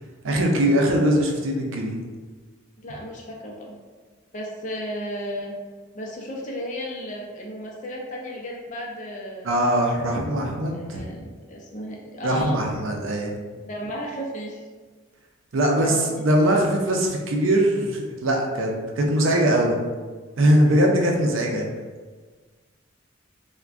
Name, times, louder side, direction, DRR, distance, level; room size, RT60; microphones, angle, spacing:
voice 1, 0.2-2.0 9.4-11.0 12.2-13.3 15.5-18.7 19.0-19.8 20.4-21.6, right 1 dB, 85° right, 1 dB, 0.5 m, -21 dB
voice 2, 2.8-3.8 4.3-5.5 5.9-9.6 10.7-12.6 13.7-14.6 15.8-16.3, equal, 40° left, -2 dB, 0.5 m, -34 dB
2.4 x 2.2 x 3.5 m, 1.4 s
head